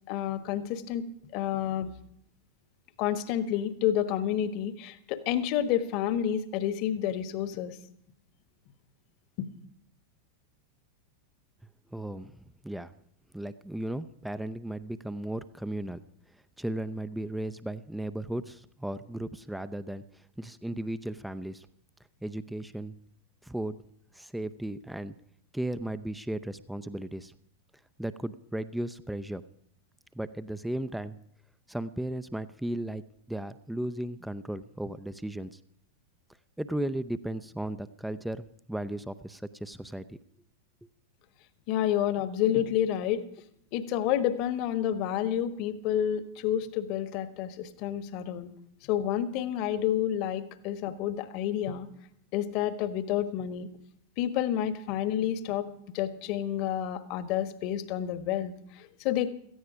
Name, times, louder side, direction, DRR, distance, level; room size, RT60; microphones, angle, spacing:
voice 1, 0.1-1.9 3.0-7.8 9.4-9.5 41.7-43.2 43.7-48.5 48.8-51.9 52.3-53.7 54.2-59.3, left 10 dB, 40° left, 12 dB, 1.3 m, -29 dB
voice 2, 11.9-12.4 12.6-12.9 13.3-16.0 16.6-21.7 22.2-23.0 23.4-23.8 24.1-25.1 25.5-27.3 28.0-29.4 30.1-31.2 31.7-33.0 33.3-35.6 36.6-40.2, right 1 dB, 5° right, 13 dB, 0.6 m, -35 dB
17.0 x 14.5 x 5.1 m, 0.68 s
figure-of-eight pair, 90°, 0 cm